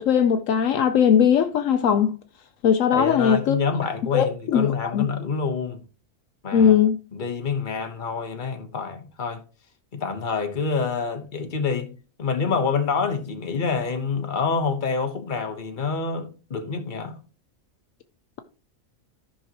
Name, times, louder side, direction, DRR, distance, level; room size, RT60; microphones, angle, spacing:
voice 1, 0.0-2.1 2.6-3.6 4.1-5.0 6.5-7.0, left 8 dB, 75° left, 1.0 m, -19 dB
voice 2, 2.9-5.8 6.4-6.8 7.1-9.4 9.9-11.9 12.2-17.2, left 5 dB, 40° left, 1.3 m, -27 dB
14.0 x 5.7 x 3.0 m
omnidirectional pair, 1.4 m